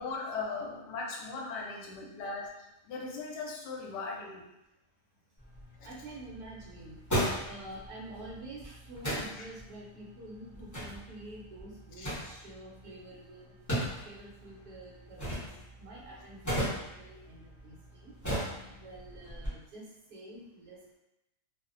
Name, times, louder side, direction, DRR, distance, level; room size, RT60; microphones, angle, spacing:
voice 1, 0.0-2.5 2.9-4.4 12.0-12.1, left 4 dB, 85° left, -1 dB, 1.2 m, -38 dB
sound 1, 5.4-19.5, equal, 15° left, 0.6 m, -38 dB
voice 2, 5.8-7.0 7.4-13.5 14.0-15.5 15.8-18.1 18.7-19.8 20.1-21.0, right 1 dB, 70° right, -4 dB, 1.2 m, -48 dB
2.9 x 2.0 x 2.5 m, 0.90 s
omnidirectional pair, 1.8 m